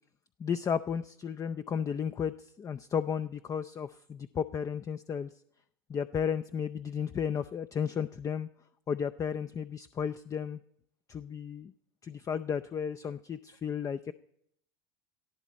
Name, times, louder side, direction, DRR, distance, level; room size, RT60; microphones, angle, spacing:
voice 1, 0.4-5.3 5.9-8.5 8.9-10.6 11.1-11.7 12.0-14.1, left 7 dB, 25° left, 12 dB, 0.5 m, -33 dB
18.5 x 13.0 x 4.2 m, 0.76 s
hypercardioid pair, 95°, 12 cm